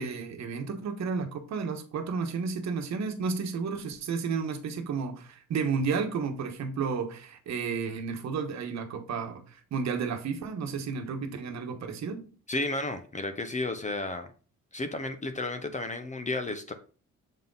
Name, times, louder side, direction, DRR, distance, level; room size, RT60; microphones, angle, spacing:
voice 1, 0.0-12.3, right 5 dB, 65° right, 1.2 m, -32 dB
voice 2, 12.5-14.3 14.7-16.7, left 2 dB, 25° left, 0.8 m, -32 dB
7.3 x 3.7 x 3.9 m
cardioid pair, 90°, 30 cm